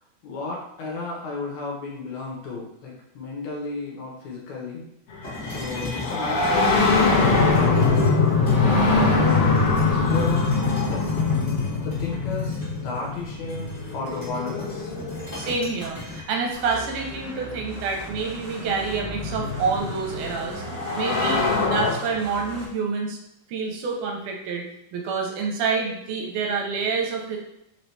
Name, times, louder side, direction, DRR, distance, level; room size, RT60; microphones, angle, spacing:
voice 1, 0.2-4.9 5.5-8.1 8.6-9.4 9.8-10.5 10.9-11.1 11.8-14.9 20.4-20.5, left 3 dB, 70° left, -2 dB, 2.2 m, -34 dB
sound 1, 5.2-15.8 17.1-17.2 18.2-21.9, left 3 dB, 90° left, 1.2 m, -23 dB
sound 2, 5.2-8.9 9.5-16.2, left 2 dB, 35° left, 0.6 m, -37 dB
voice 2, 15.3-20.6 20.9-23.2 23.5-24.6 24.9-27.4, right 4 dB, 80° right, 1 dB, 2.2 m, -27 dB
sound 3, 16.5-22.7, right 1 dB, 40° right, 1.1 m, -39 dB
5.1 x 2.8 x 3.3 m, 0.80 s
omnidirectional pair, 3.7 m